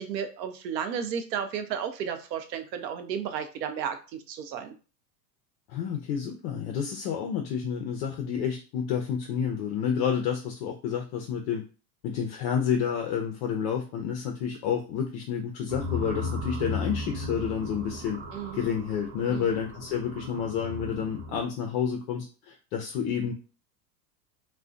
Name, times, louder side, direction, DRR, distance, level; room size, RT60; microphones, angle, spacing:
voice 1, 0.0-4.7 18.3-18.6 19.3-19.5, right 8 dB, 80° right, 7 dB, 0.6 m, -33 dB
voice 2, 5.7-11.6 12.0-18.2 18.5-23.3, left 7 dB, 40° left, 2 dB, 0.4 m, -29 dB
sound 1, 15.7-21.5, left 1 dB, 40° right, 0.7 m, -36 dB
2.4 x 2.1 x 2.4 m, 0.34 s
hypercardioid pair, 100°, 50 cm